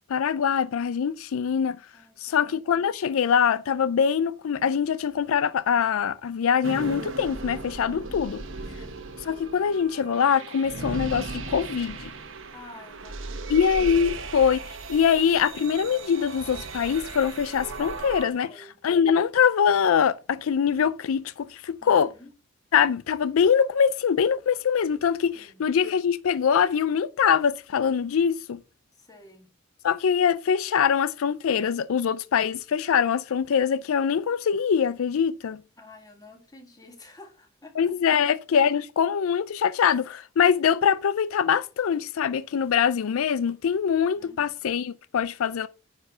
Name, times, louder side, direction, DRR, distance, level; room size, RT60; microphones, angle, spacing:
voice 1, 0.1-1.8 2.2-8.4 9.3-12.1 13.5-18.5 18.8-22.1 22.7-28.6 29.8-35.6 37.8-45.7, left 7 dB, 80° left, 0.4 m, -23 dB
voice 2, 1.9-2.5 7.9-8.3 8.6-9.1 12.5-14.0 18.3-18.8 21.8-22.3 25.3-25.7 28.9-29.5 35.8-37.8 38.0-38.3 44.1-44.4, left 2 dB, 20° left, 1.8 m, -50 dB
sound 1, 6.6-18.3, right 3 dB, 65° right, 1.1 m, -37 dB
9.6 x 4.4 x 5.7 m
head